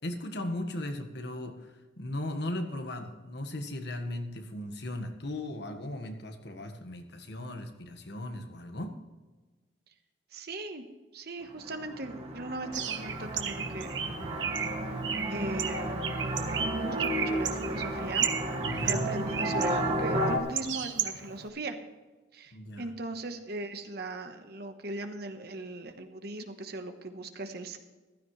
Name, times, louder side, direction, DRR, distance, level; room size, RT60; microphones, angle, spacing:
voice 1, 0.0-9.0 18.6-19.1 22.5-22.9, left 1 dB, 65° left, 6 dB, 1.5 m, -37 dB
voice 2, 10.3-10.8 11.1-13.9 15.3-16.1 16.6-18.3 18.8-21.8 22.3-27.8, right 2 dB, 60° right, 7 dB, 1.2 m, -39 dB
sound 1, 11.6-20.4, right 1 dB, 35° right, 1.7 m, -32 dB
Bird, 12.7-21.5, right 7 dB, 90° right, 1.3 m, -35 dB
15.0 x 13.0 x 3.2 m, 1.3 s
head